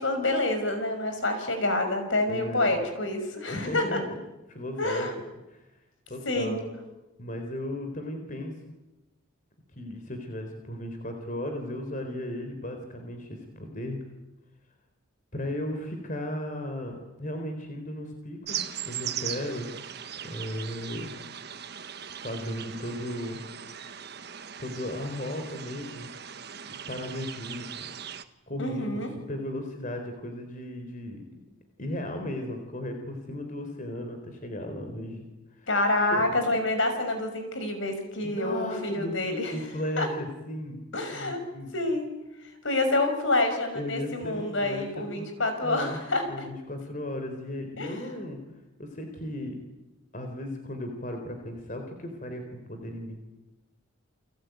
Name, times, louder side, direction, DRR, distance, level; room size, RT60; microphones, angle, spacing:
voice 1, 0.0-4.0 4.8-5.1 6.2-6.6 28.6-29.1 35.7-39.5 40.0-40.1 40.9-41.4 41.7-42.1 42.6-46.2 47.8-48.0, left 2 dB, 65° left, 7 dB, 5.9 m, -27 dB
voice 2, 2.2-2.7 3.5-4.2 4.5-5.1 5.5-5.7 6.1-6.6 7.2-8.5 9.8-14.0 15.3-19.7 20.2-21.1 22.2-23.4 24.6-26.1 26.9-27.7 28.5-29.0 29.3-31.4 31.8-35.2 35.6-35.7 36.1-36.5 38.2-39.2 39.5-40.8 41.1-41.7 43.7-45.3 45.6-46.0 46.3-48.4 48.8-49.5 50.1-53.2, left 1 dB, 40° left, 5 dB, 4.0 m, -35 dB
sound 1, 18.5-28.2, right 9 dB, 50° right, 1.4 m, -39 dB
30.0 x 21.5 x 9.4 m, 1.0 s
head